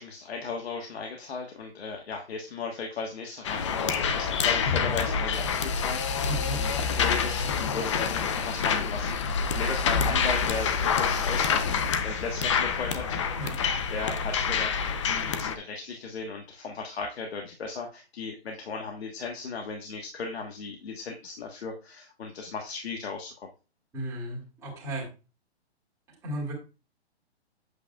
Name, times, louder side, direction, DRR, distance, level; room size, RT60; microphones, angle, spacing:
voice 1, 0.0-6.3 6.5-11.7 12.0-13.2 13.9-23.5, left 4 dB, 65° left, 2 dB, 1.4 m, -36 dB
sound 1, 3.4-15.6, left 6 dB, 30° left, 0.6 m, -27 dB
voice 2, 6.3-6.6 13.4-13.6 23.9-25.1 26.2-26.5, right 1 dB, 10° right, -5 dB, 2.7 m, -34 dB
8.3 x 8.2 x 2.3 m, 0.30 s
hypercardioid pair, 160°, 33 cm